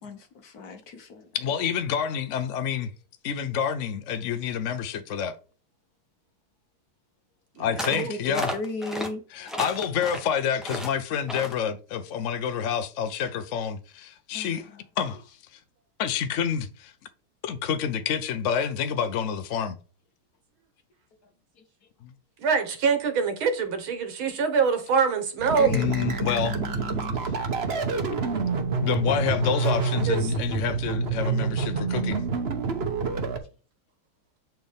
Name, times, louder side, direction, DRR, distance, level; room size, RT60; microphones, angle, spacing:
voice 1, 0.0-1.3 7.9-9.5 14.3-14.8 21.6-21.7 25.6-27.4, left 3 dB, 60° left, 1.1 m, -36 dB
voice 2, 1.3-2.9 3.2-5.4 7.6-8.5 9.3-14.7 15.0-15.2 16.0-16.9 17.4-19.8 22.0-22.1 25.7-26.6 28.8-32.2, left 8 dB, 75° left, 0.7 m, -28 dB
voice 3, 7.6-8.1 22.4-25.7 30.1-30.3, right 6 dB, 75° right, 1.9 m, -24 dB
sound 1, 7.8-8.0 8.3-9.1 9.5-10.3 10.6-10.9 11.3-11.6, equal, ahead, 0.5 m, -33 dB
sound 2, 25.4-33.4, right 4 dB, 45° right, 0.9 m, -27 dB
7.9 x 4.5 x 3.5 m
omnidirectional pair, 2.3 m